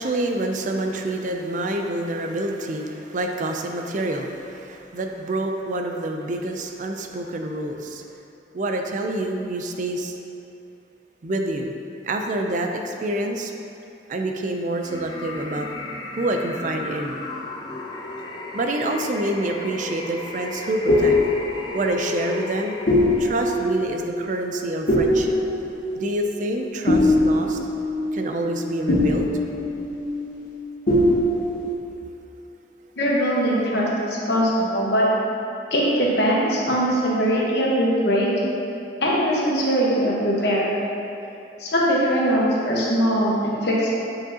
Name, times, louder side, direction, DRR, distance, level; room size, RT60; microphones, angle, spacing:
voice 1, 0.0-8.0 8.5-10.2 11.2-11.7 12.0-13.5 14.1-15.7 16.2-17.2 18.5-21.2 21.7-22.8 23.2-25.4 26.0-27.6 28.1-29.3, right 1 dB, 45° right, 3 dB, 0.4 m, -27 dB
sound 1, 14.8-23.8, left 2 dB, 25° left, 0.5 m, -35 dB
sound 2, 20.5-30.6 30.9-31.7, left 1 dB, 45° left, 0.8 m, -23 dB
voice 2, 33.0-35.1 35.7-38.3 39.0-40.6 41.6-43.9, equal, 65° left, -5 dB, 1.2 m, -21 dB
7.9 x 4.8 x 2.8 m, 2.7 s
head